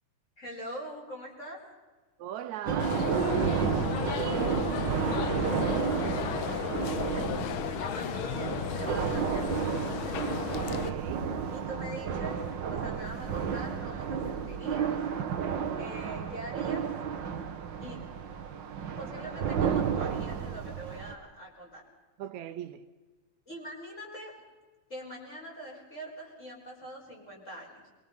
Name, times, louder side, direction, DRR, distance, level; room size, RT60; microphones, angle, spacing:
voice 1, 0.4-1.6 6.0-6.7 6.9-8.5 8.8-10.2 11.5-15.0 15.7-16.9 17.8-18.0 18.7-21.8 23.5-24.3 24.9-27.9, right 1 dB, 25° left, 6.0 m, -43 dB
voice 2, 2.2-5.1 10.7-11.3 22.2-22.9, right 10 dB, 80° right, 2.1 m, -40 dB
sound 1, 2.7-21.1, right 7 dB, 50° right, 1.6 m, -32 dB
sound 2, 2.8-10.9, left 10 dB, 90° left, 1.1 m, -34 dB
24.5 x 24.0 x 5.6 m
omnidirectional pair, 3.4 m